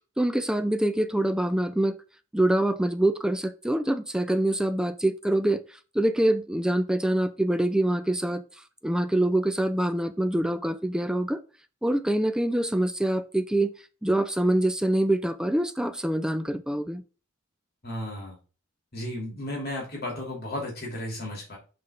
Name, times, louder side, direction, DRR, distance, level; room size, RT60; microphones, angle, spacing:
voice 1, 0.2-2.0 2.3-8.4 8.8-11.4 11.8-13.7 14.0-17.0, right 1 dB, 5° right, 11 dB, 0.4 m, -25 dB
voice 2, 17.8-18.4 18.9-21.6, left 1 dB, 50° left, -2 dB, 2.9 m, -34 dB
7.9 x 3.4 x 4.9 m, 0.34 s
head